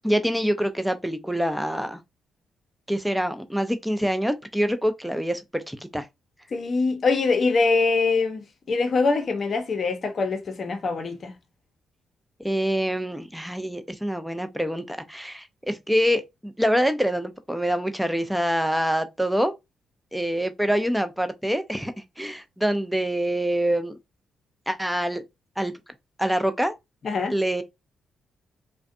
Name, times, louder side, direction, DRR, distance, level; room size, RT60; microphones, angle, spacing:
voice 1, 0.0-2.0 2.9-6.1 12.4-19.5 20.1-23.9 24.7-25.2 25.6-25.7 26.2-26.7 27.3-27.6, equal, 5° right, 0.5 m, -25 dB
voice 2, 6.5-11.3 27.0-27.3, left 4 dB, 50° left, 0.7 m, -23 dB
2.5 x 2.2 x 2.5 m
hypercardioid pair, 45°, 0 cm